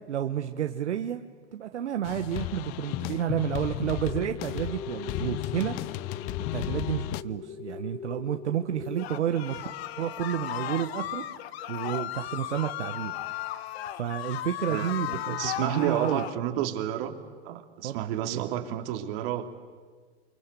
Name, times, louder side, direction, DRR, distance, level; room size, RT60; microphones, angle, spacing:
voice 1, 0.1-1.2 1.5-5.8 6.5-9.7 10.0-11.2 11.7-13.1 13.9-16.2 17.8-17.9 18.3-18.4, right 10 dB, 85° right, 6 dB, 1.3 m, -30 dB
sound 1, 2.0-7.2, left 17 dB, 40° left, 0.7 m, -34 dB
sound 2, 4.0-9.0, left 6 dB, 25° left, 1.2 m, -41 dB
sound 3, 9.0-16.4, left 13 dB, 65° left, 1.1 m, -35 dB
voice 2, 15.3-17.1 17.4-19.4, right 12 dB, 55° right, 6 dB, 2.8 m, -30 dB
28.0 x 24.5 x 8.3 m, 1.6 s
hypercardioid pair, 110°, 34 cm